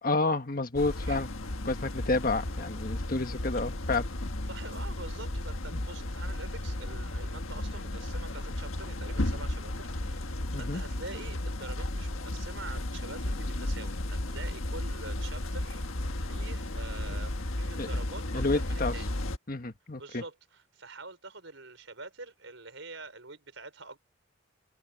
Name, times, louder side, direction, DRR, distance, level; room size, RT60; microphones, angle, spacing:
voice 1, 0.0-1.3 1.6-4.1 10.5-10.8 17.8-17.9 18.3-18.9 19.5-20.2, left 3 dB, 45° left, 1.4 m, -30 dB
sound 1, 0.7-19.4, left 1 dB, 85° left, 1.5 m, -34 dB
voice 2, 0.9-1.2 4.5-15.8 16.1-19.1 20.0-24.0, right 3 dB, 70° right, 5.2 m, -46 dB
head